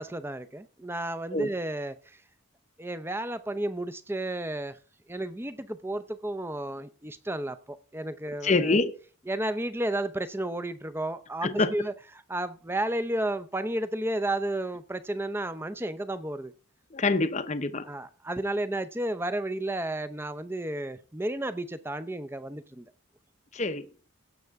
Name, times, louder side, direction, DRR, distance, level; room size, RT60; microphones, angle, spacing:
voice 1, 0.0-2.2 2.8-4.8 5.1-8.8 9.3-11.9 12.3-16.5 17.8-22.8, right 1 dB, 10° right, 11 dB, 0.6 m, -32 dB
voice 2, 8.4-8.9 11.4-11.7 16.9-17.9 23.5-23.8, left 3 dB, 30° left, 10 dB, 0.7 m, -25 dB
17.0 x 6.7 x 3.6 m, 0.37 s
head